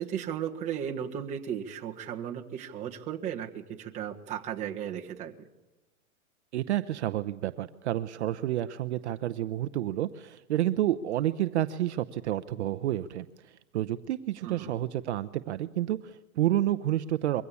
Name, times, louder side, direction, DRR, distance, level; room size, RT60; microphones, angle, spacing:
voice 1, 0.0-5.3 14.4-14.7, right 9 dB, 15° right, 0 dB, 1.4 m, -35 dB
voice 2, 6.5-17.4, right 13 dB, 50° right, 11 dB, 0.7 m, -30 dB
23.0 x 16.5 x 8.4 m, 1.0 s
hypercardioid pair, 165°, 43 cm